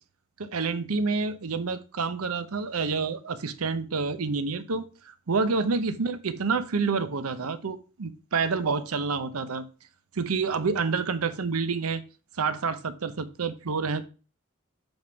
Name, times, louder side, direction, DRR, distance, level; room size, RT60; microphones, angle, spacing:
voice 1, 0.4-9.7 10.2-12.0 12.4-14.1, right 4 dB, 90° right, 0.7 m, -28 dB
7.9 x 3.6 x 5.9 m
head